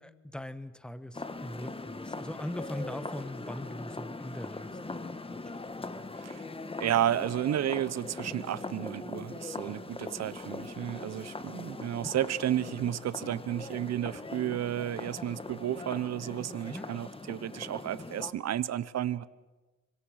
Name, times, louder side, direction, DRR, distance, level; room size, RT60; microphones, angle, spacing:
voice 1, 0.0-4.8 5.3-5.4 13.5-13.6 13.9-14.0 16.7-16.9, left 1 dB, 5° left, 13 dB, 1.3 m, -40 dB
sound 1, 1.1-18.3, left 3 dB, 20° left, 1.6 m, -41 dB
voice 2, 6.8-19.3, right 11 dB, 60° right, 16 dB, 1.0 m, -32 dB
25.5 x 23.5 x 6.5 m, 1.2 s
cardioid pair, 90°, 30 cm